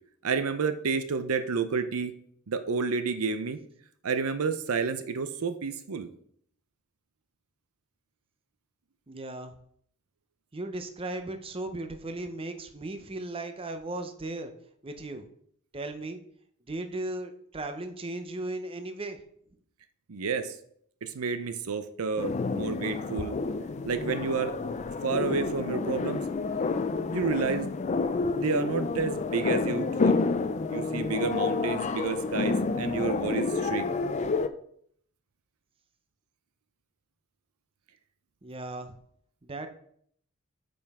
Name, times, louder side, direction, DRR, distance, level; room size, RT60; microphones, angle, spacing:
voice 1, 0.2-2.1 2.5-3.6 4.0-6.1 20.1-20.6 21.0-23.4 23.8-24.5 25.0-26.2 27.1-27.7 28.4-30.2 30.7-33.9, right 5 dB, 80° right, 10 dB, 0.6 m, -30 dB
voice 2, 9.1-9.5 10.5-14.5 14.8-15.3 15.7-16.2 16.7-19.2 38.4-39.0 39.4-39.7, right 2 dB, 25° right, 7 dB, 0.6 m, -36 dB
sound 1, 22.2-34.5, left 4 dB, 30° left, 0.4 m, -29 dB
8.8 x 5.4 x 3.5 m, 0.65 s
head